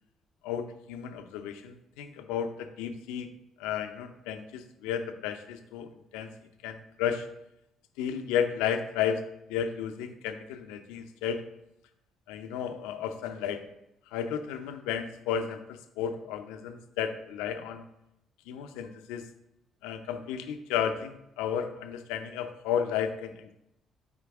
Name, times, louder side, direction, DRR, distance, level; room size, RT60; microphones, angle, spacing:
voice 1, 0.4-3.3 3.6-6.3 6.6-7.3 8.0-9.2 9.5-11.4 12.3-13.6 14.1-17.8 18.5-19.3 19.8-23.5, left 8 dB, 75° left, 8 dB, 0.5 m, -33 dB
6.1 x 4.5 x 3.5 m, 0.83 s
hypercardioid pair, 45°, 0 cm